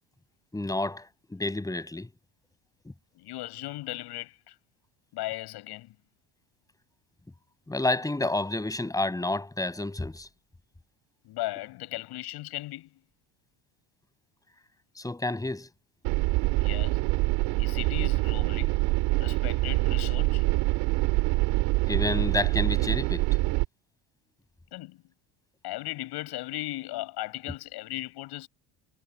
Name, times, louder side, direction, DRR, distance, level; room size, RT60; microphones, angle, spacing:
voice 1, 0.5-2.1 7.7-10.3 15.0-15.7 21.9-23.3, left 2 dB, 10° left, 7.0 m, -29 dB
voice 2, 3.1-4.5 5.1-6.0 11.2-13.0 16.5-17.0 17.6-18.8 19.2-20.5 24.7-25.0 25.6-28.5, left 18 dB, 70° left, 8.0 m, -37 dB
sound 1, 16.0-23.6, right 23 dB, 85° right, 6.2 m, -25 dB
cardioid pair, 130°, 40 cm